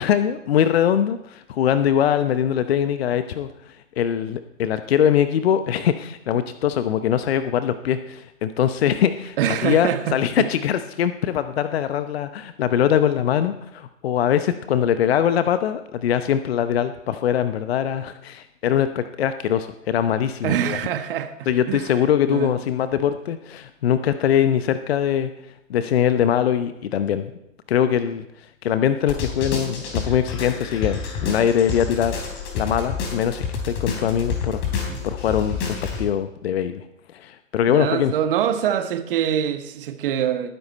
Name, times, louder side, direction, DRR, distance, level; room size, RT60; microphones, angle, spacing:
voice 1, 0.0-20.8 21.5-25.3 25.7-27.3 27.7-32.2 32.5-36.8 37.1-38.1, left 9 dB, 50° left, 0.8 m, -22 dB
voice 2, 9.4-10.5 20.4-21.9 22.3-22.5 34.9-35.0 37.7-40.5, right 9 dB, 45° right, 1.5 m, -24 dB
sound 1, 29.1-36.0, left 6 dB, 30° left, 3.6 m, -29 dB
19.5 x 10.0 x 4.2 m
figure-of-eight pair, 125°, 40 cm